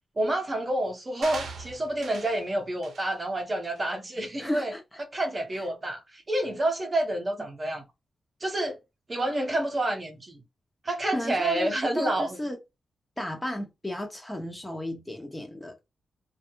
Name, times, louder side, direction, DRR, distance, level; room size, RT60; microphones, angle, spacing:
voice 1, 0.2-4.7 5.0-7.8 8.4-8.8 9.1-10.4 10.8-12.4, right 1 dB, 30° right, 0.7 m, -28 dB
sound 1, 1.2-2.4 2.8-3.1 3.6-3.8, right 4 dB, 75° right, 0.6 m, -40 dB
voice 2, 4.4-4.8 11.1-11.7 11.9-12.6 13.2-15.7, left 1 dB, 15° left, 0.7 m, -33 dB
2.2 x 2.0 x 2.8 m
cardioid pair, 80°, 0 cm